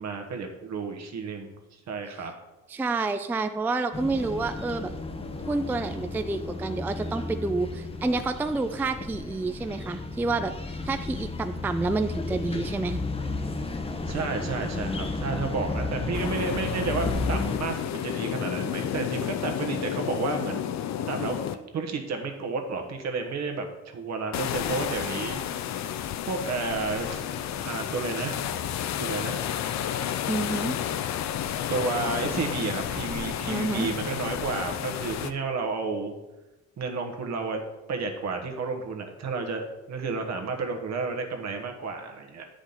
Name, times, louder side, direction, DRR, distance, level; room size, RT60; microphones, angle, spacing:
voice 1, 0.0-1.5 1.9-2.3 14.1-20.6 21.1-21.4 21.7-25.4 26.2-27.3 27.6-28.4 29.0-29.4 31.7-36.1 36.8-37.6 37.9-42.4, right 4 dB, 60° right, 4 dB, 1.2 m, -31 dB
voice 2, 2.7-4.9 5.5-13.0 30.3-30.8 33.5-33.9, right 3 dB, 5° right, 9 dB, 0.3 m, -29 dB
sound 1, 3.9-17.6, left 3 dB, 20° left, 0.7 m, -33 dB
sound 2, 16.1-21.5 24.3-35.3, left 10 dB, 65° left, 0.5 m, -31 dB
8.6 x 5.1 x 4.0 m, 1.0 s
cardioid pair, 90°, 30 cm